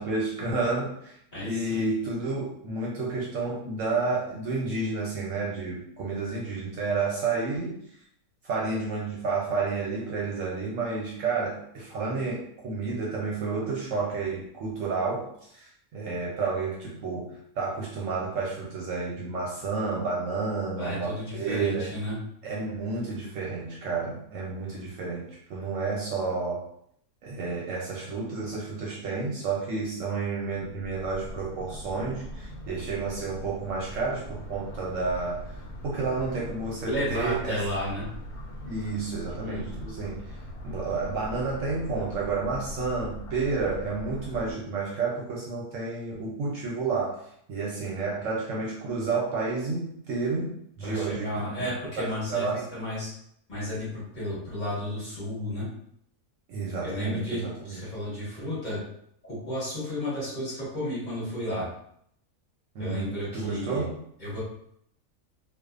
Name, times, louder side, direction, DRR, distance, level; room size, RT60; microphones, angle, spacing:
voice 1, 0.0-7.8 8.4-21.9 22.4-26.7 27.2-35.6 35.8-37.6 38.6-47.2 47.5-51.4 51.7-52.7 56.5-57.8 62.7-64.0, right 4 dB, 70° right, -4 dB, 0.8 m, -31 dB
voice 2, 1.3-1.8 20.8-22.2 36.8-38.1 39.4-39.6 50.8-53.1 53.5-55.7 56.8-58.8 59.2-61.7 62.8-63.9 64.2-64.4, left 1 dB, 35° left, -9 dB, 1.2 m, -33 dB
sound 1, 30.5-44.5, equal, 85° left, 1.1 m, -41 dB
2.5 x 2.3 x 2.4 m, 0.69 s
omnidirectional pair, 1.6 m